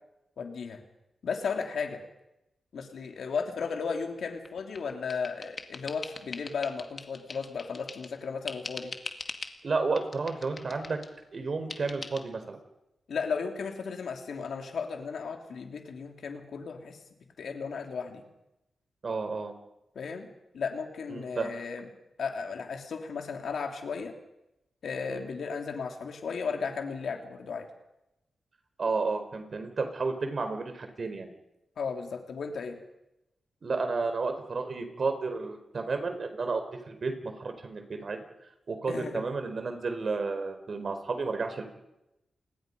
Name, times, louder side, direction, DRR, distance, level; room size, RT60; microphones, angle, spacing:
voice 1, 0.4-0.8 1.2-2.0 2.7-8.9 13.1-17.0 17.4-18.2 19.9-20.3 20.5-21.9 22.2-24.1 24.8-27.7 31.8-32.8 38.9-39.2, left 5 dB, 80° left, 4 dB, 3.1 m, -35 dB
sound 1, 4.4-8.2 8.5-9.6 9.9-11.1 11.7-12.2, left 4 dB, 50° left, 2.3 m, -42 dB
voice 2, 9.6-11.0 11.3-12.6 19.0-19.5 21.1-21.5 25.1-25.2 28.8-31.3 33.6-38.2 38.7-41.6, right 4 dB, 55° right, 7 dB, 4.6 m, -32 dB
28.5 x 20.5 x 5.5 m, 0.90 s
cardioid pair, 60°, 0 cm